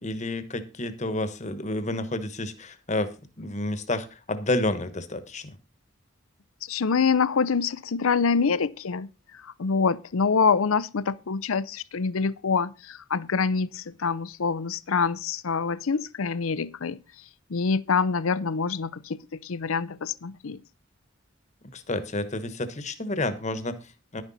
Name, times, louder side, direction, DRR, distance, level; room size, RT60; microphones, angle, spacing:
voice 1, 0.0-5.6 21.7-24.2, left 2 dB, 35° left, 1.2 m, -30 dB
voice 2, 6.6-9.1 9.3-17.0 17.5-20.6, left 5 dB, 85° left, 0.6 m, -26 dB
11.0 x 9.6 x 4.1 m
head